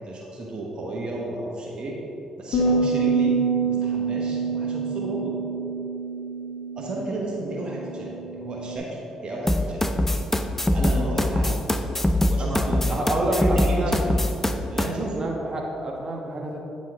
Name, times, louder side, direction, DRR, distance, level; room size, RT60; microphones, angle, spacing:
voice 1, 0.0-1.9 2.4-3.4 3.6-5.4 6.8-9.9 10.7-11.6 12.3-14.2 14.7-15.3, right 2 dB, 50° right, -2 dB, 1.1 m, -32 dB
sound 1, 2.5-8.8, right 4 dB, 70° left, 1.0 m, -26 dB
sound 2, 9.5-14.9, left 1 dB, 15° left, 0.5 m, -22 dB
voice 2, 12.9-13.9 15.1-16.6, right 1 dB, 30° right, -1 dB, 1.2 m, -28 dB
9.1 x 4.4 x 3.6 m, 2.9 s
supercardioid pair, 55°, 2 cm